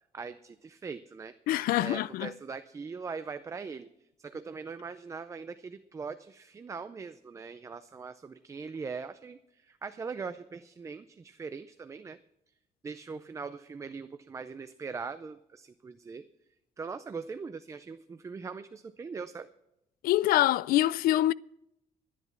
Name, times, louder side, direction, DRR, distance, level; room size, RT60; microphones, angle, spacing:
voice 1, 0.1-1.3 1.8-3.9 4.2-12.2 12.8-16.2 16.8-19.5, right 5 dB, 20° right, 0.5 m, -41 dB
voice 2, 1.5-2.3 20.0-21.3, left 14 dB, 85° left, 0.4 m, -25 dB
12.5 x 11.0 x 5.8 m
cardioid pair, 165°, 15 cm